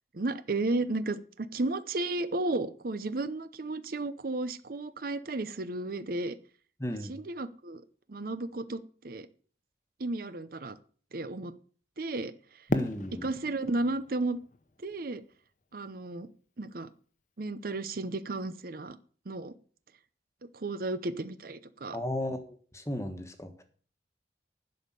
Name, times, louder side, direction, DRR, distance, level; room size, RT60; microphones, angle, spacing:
voice 1, 0.1-6.3 7.1-7.8 8.1-9.3 10.0-10.8 11.1-11.5 12.0-12.3 13.2-14.4 14.8-15.2 15.7-16.3 16.6-16.9 17.4-19.0 19.3-19.5 20.5-22.0, right 2 dB, 55° right, 13 dB, 0.7 m, -33 dB
voice 2, 6.8-7.1 12.7-13.3 21.9-23.6, left 1 dB, 15° left, 7 dB, 1.4 m, -35 dB
Fireworks, 12.7-15.7, left 1 dB, 45° left, 1.0 m, -37 dB
11.5 x 5.3 x 8.3 m, 0.43 s
head